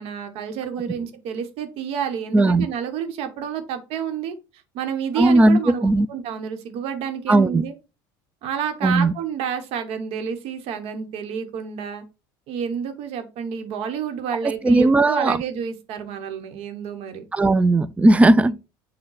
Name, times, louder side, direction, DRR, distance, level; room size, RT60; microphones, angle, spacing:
voice 1, 0.0-4.3 4.7-7.7 8.4-12.0 12.5-17.2 18.3-18.5, right 7 dB, 65° right, 1.0 m, -29 dB
voice 2, 2.3-2.7 5.2-6.1 7.3-7.6 8.8-9.1 14.6-15.4 17.3-18.5, right 2 dB, 10° right, 0.3 m, -16 dB
6.2 x 2.2 x 3.9 m
supercardioid pair, 90°, 11 cm